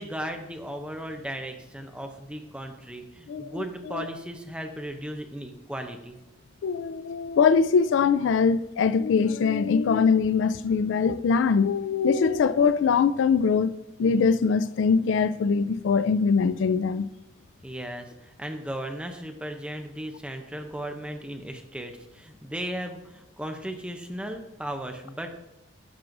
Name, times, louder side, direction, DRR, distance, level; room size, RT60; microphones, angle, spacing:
voice 1, 0.0-6.2 17.6-25.4, right 1 dB, 5° right, 0.6 m, -36 dB
voice 2, 3.3-4.0 6.6-17.1, left 5 dB, 85° left, 0.3 m, -22 dB
10.5 x 6.1 x 2.6 m
head